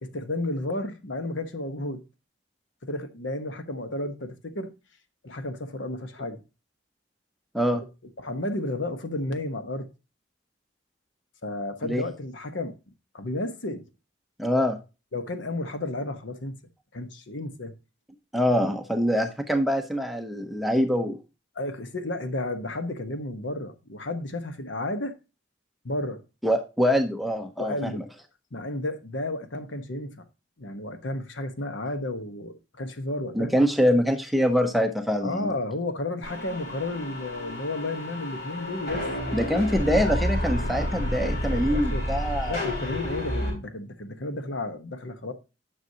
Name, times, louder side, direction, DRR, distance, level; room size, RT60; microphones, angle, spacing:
voice 1, 0.0-2.0 2.8-4.7 5.2-6.4 7.7-7.8 8.2-9.9 11.4-12.7 13.1-13.9 15.1-16.6 16.9-17.7 21.5-25.1 25.8-26.2 27.6-28.0 28.5-30.2 30.6-33.5 35.2-39.1 41.2-42.1 42.5-45.3, left 2 dB, 80° left, 1.1 m, -32 dB
voice 2, 14.4-14.8 18.3-21.2 26.4-27.9 33.3-35.5 39.3-42.6, equal, ahead, 0.7 m, -24 dB
sound 1, 36.2-43.5, left 1 dB, 55° left, 4.4 m, -30 dB
9.4 x 6.1 x 2.8 m
head